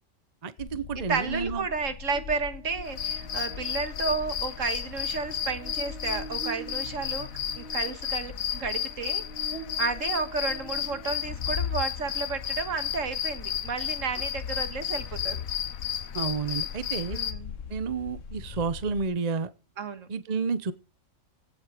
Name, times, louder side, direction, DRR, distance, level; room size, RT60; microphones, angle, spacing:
voice 1, 0.4-1.6 16.1-17.2 17.7-19.5 20.1-20.7, right 5 dB, 35° right, 0.8 m, -30 dB
sound 1, 0.6-19.1, left 8 dB, 70° left, 1.3 m, -40 dB
voice 2, 1.0-7.3 7.6-9.2 9.8-15.4 17.1-17.5 19.8-20.1, right 4 dB, 70° right, 1.9 m, -32 dB
Buzz, 2.1-11.6, right 3 dB, 45° left, 2.0 m, -46 dB
sound 2, 2.8-17.3, left 9 dB, 85° left, 1.4 m, -33 dB
16.5 x 7.7 x 4.9 m
omnidirectional pair, 1.4 m